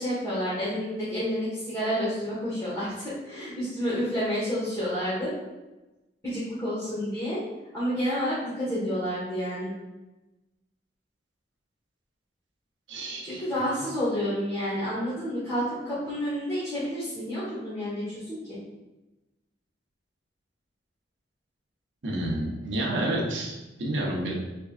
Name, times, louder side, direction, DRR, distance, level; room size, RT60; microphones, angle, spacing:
voice 1, 0.0-2.9 3.2-5.3 6.2-7.4 7.7-9.7 13.2-18.6, equal, 15° left, -12 dB, 1.3 m, -29 dB
voice 2, 12.9-13.4 22.0-24.3, right 1 dB, 75° right, -2 dB, 0.8 m, -29 dB
4.4 x 3.6 x 2.4 m, 1.0 s
head